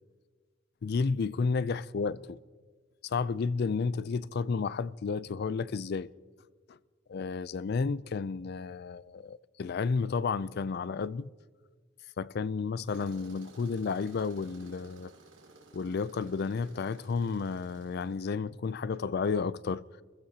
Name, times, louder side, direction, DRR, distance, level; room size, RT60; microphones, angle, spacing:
voice 1, 0.8-2.4 3.0-6.1 6.7-6.8 7.1-11.3 12.2-15.1 15.7-19.8, left 5 dB, 55° left, 0.4 m, -32 dB
Tools, 12.9-18.2, right 2 dB, 75° right, 2.4 m, -55 dB
29.0 x 15.5 x 2.8 m
head